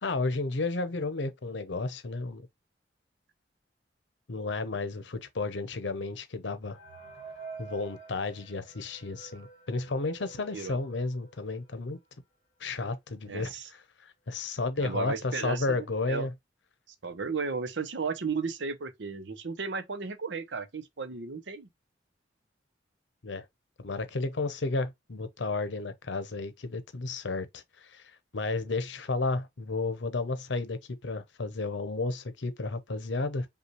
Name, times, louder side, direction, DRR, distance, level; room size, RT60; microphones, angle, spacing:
voice 1, 0.0-2.4 4.3-6.8 7.6-12.0 12.6-13.5 14.3-16.3 23.2-23.4 23.8-27.6 27.9-28.0 28.3-33.5, left 3 dB, 80° left, 0.8 m, -32 dB
sound 1, 6.7-12.1 12.6-12.7 12.9-13.0 13.7-13.8 14.2-14.5, right 4 dB, 35° left, 2.2 m, -49 dB
voice 2, 13.3-13.7 14.8-16.3 17.0-21.7, right 4 dB, 80° right, 0.8 m, -34 dB
5.5 x 2.4 x 3.1 m
head